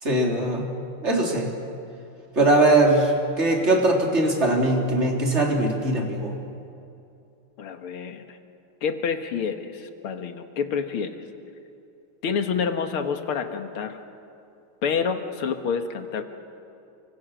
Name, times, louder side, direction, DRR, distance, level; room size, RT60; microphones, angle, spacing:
voice 1, 0.0-0.6 1.0-1.5 2.4-6.4, right 2 dB, 30° right, 0 dB, 3.6 m, -21 dB
voice 2, 7.6-8.4 8.8-11.2 12.2-14.0 14.8-16.2, left 6 dB, 80° left, 6 dB, 2.4 m, -28 dB
30.0 x 25.0 x 6.4 m, 2.7 s
omnidirectional pair, 2.4 m